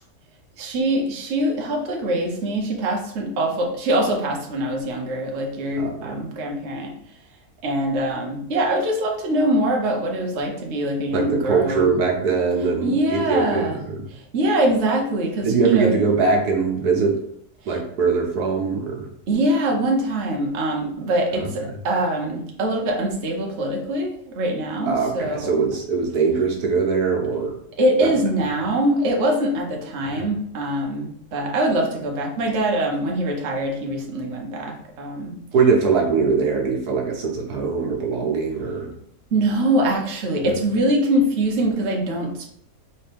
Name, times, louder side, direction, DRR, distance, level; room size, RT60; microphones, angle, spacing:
voice 1, 0.6-6.9 7.6-11.9 12.8-13.8 14.1-15.9 17.6-17.8 19.3-25.5 27.8-35.4 39.3-42.5, right 1 dB, 50° right, 0 dB, 1.0 m, -23 dB
voice 2, 5.8-6.2 11.1-14.0 15.4-17.2 17.6-19.1 21.3-21.5 24.9-27.5 28.0-28.1 30.1-30.2 35.5-38.9 40.4-40.5, right 5 dB, 80° right, 0 dB, 1.5 m, -22 dB
4.3 x 3.4 x 3.3 m, 0.71 s
omnidirectional pair, 1.6 m